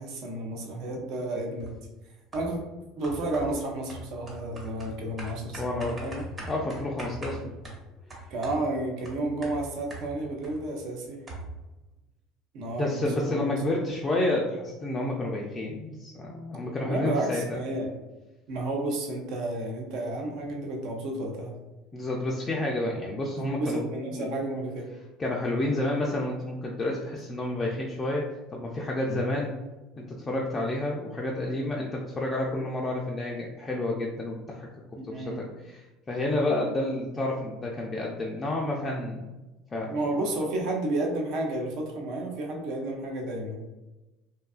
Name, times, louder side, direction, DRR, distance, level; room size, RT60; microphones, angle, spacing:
voice 1, 0.0-1.7 2.3-2.6 3.0-6.2 7.4-7.5 8.3-11.2 12.5-13.6 16.8-17.9 18.5-21.6 23.3-24.9 29.1-29.2 35.0-35.4 39.9-43.6, right 2 dB, 65° right, 1 dB, 0.6 m, -31 dB
sound 1, 1.6-1.9 2.3-2.7 3.0-10.7 10.9-11.0 11.3-11.7, right 1 dB, 30° right, 0.9 m, -41 dB
voice 2, 5.6-6.0 6.5-7.4 12.8-17.6 21.9-23.8 24.1-24.3 25.2-28.2 28.5-29.5 30.0-34.7 35.1-35.8 36.1-39.4 39.7-40.2, left 1 dB, 25° left, -2 dB, 0.3 m, -30 dB
2.7 x 2.3 x 2.3 m, 1.1 s
supercardioid pair, 100°, 0 cm